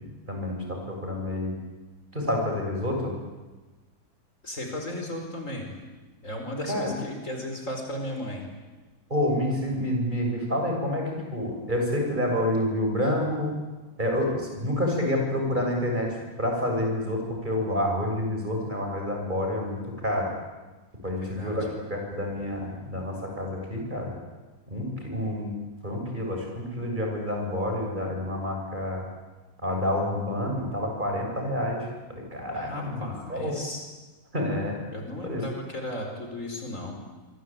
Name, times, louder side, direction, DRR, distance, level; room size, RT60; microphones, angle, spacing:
voice 1, 0.0-1.6 2.1-3.2 6.7-6.9 9.1-13.5 14.0-20.3 21.0-24.1 24.7-25.6 25.8-29.1 29.6-33.6 34.3-34.8 35.2-35.4, left 1 dB, 30° right, 1 dB, 7.0 m, -28 dB
voice 2, 4.4-5.8 6.2-8.4 21.2-21.7 32.5-33.8 34.9-36.9, left 1 dB, 55° left, 2 dB, 5.1 m, -35 dB
25.5 x 25.0 x 8.9 m, 1.2 s
omnidirectional pair, 1.7 m